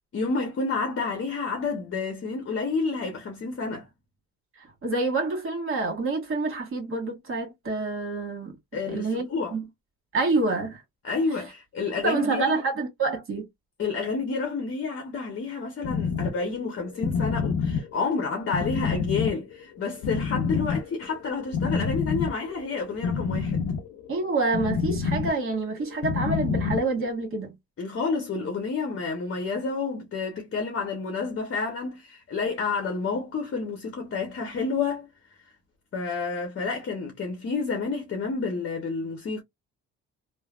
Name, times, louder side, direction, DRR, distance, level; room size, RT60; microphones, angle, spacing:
voice 1, 0.1-3.9 8.7-9.5 11.0-12.6 13.8-23.6 27.8-35.1 35.9-39.4, left 4 dB, 45° left, 0.9 m, -29 dB
voice 2, 4.8-8.5 8.9-9.7 10.1-10.8 12.0-13.5 24.1-27.5, right 3 dB, 45° right, 1.5 m, -27 dB
sound 1, 15.8-27.2, left 5 dB, 70° left, 0.7 m, -29 dB
3.2 x 2.1 x 2.4 m
cardioid pair, 90°, 30 cm